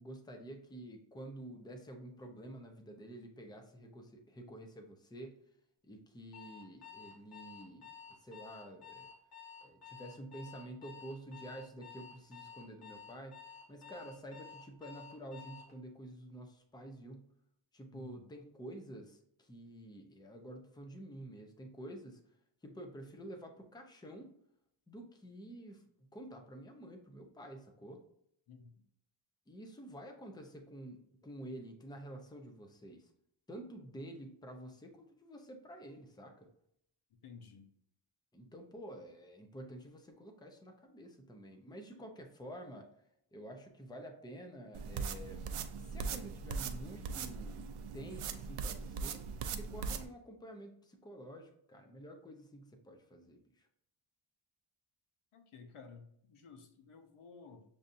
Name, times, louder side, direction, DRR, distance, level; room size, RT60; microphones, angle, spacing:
voice 1, 0.0-5.4 5.9-9.1 9.6-17.3 17.7-22.2 22.6-24.4 24.9-25.8 26.1-28.0 29.5-33.1 33.5-36.5 38.3-42.9 43.3-45.5 45.8-49.2 49.5-53.7, right 1 dB, 10° left, 4 dB, 0.5 m, -49 dB
Alarm, 6.3-15.7, left 6 dB, 50° left, 1.3 m, -52 dB
voice 2, 17.9-18.3 28.5-28.7 37.2-37.7 55.3-57.6, left 5 dB, 85° left, 6 dB, 0.8 m, -54 dB
sound 1, 44.7-50.1, right 5 dB, 85° right, 0.6 m, -40 dB
6.8 x 2.6 x 2.6 m, 0.73 s
wide cardioid pair, 135°, 49 cm